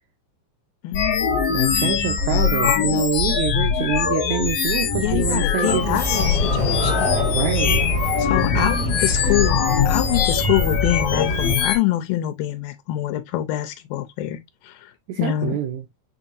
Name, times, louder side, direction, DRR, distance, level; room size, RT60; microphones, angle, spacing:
voice 1, 0.8-1.3 5.0-7.1 8.2-14.9 15.2-15.6, left 14 dB, 85° left, 2.4 m, -25 dB
sound 1, 0.9-11.8, left 7 dB, 65° left, 1.8 m, -22 dB
voice 2, 1.5-6.0 7.3-7.9 8.5-8.7 9.0-9.2 15.1-15.8, right 11 dB, 75° right, 1.7 m, -26 dB
Sliding door, 5.7-11.5, equal, 40° left, 1.8 m, -26 dB
6.4 x 2.9 x 2.5 m
omnidirectional pair, 3.9 m